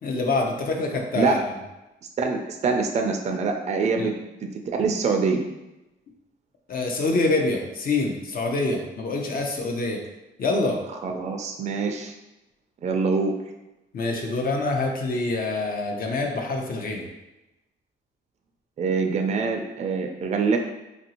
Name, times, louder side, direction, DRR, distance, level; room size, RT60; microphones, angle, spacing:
voice 1, 0.0-1.4 4.0-4.1 6.7-10.0 10.4-10.8 13.9-17.1, left 3 dB, 45° left, 2 dB, 0.6 m, -25 dB
voice 2, 2.2-4.1 4.4-5.4 11.0-12.1 12.8-13.3 18.8-20.6, right 4 dB, 35° right, 4 dB, 0.4 m, -24 dB
3.0 x 2.6 x 2.8 m, 0.98 s
cardioid pair, 90°, 20 cm